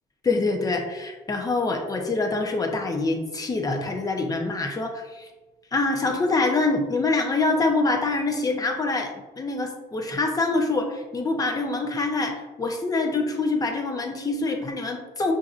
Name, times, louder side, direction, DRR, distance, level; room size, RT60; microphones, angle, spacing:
voice 1, 0.2-5.3 5.7-15.3, left 3 dB, 20° left, 2 dB, 0.7 m, -25 dB
5.7 x 2.7 x 2.4 m, 1.1 s
cardioid pair, 110°, 17 cm